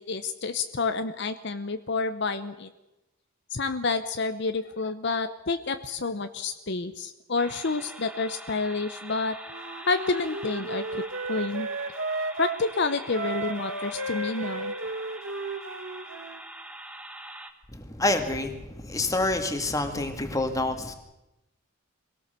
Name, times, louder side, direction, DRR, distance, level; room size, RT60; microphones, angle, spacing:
voice 1, 0.0-2.7 3.5-9.4 9.9-11.0 11.3-11.7 12.4-14.7, left 3 dB, 55° left, 9 dB, 0.8 m, -29 dB
sound 1, 7.4-17.5, right 1 dB, 5° right, 1.4 m, -43 dB
Wind instrument woodwind instrument, 9.5-12.6 13.1-16.4, right 2 dB, 70° right, 1.6 m, -34 dB
voice 2, 17.7-20.9, left 2 dB, 15° left, 5 dB, 2.0 m, -27 dB
23.5 x 17.5 x 6.8 m, 0.96 s
head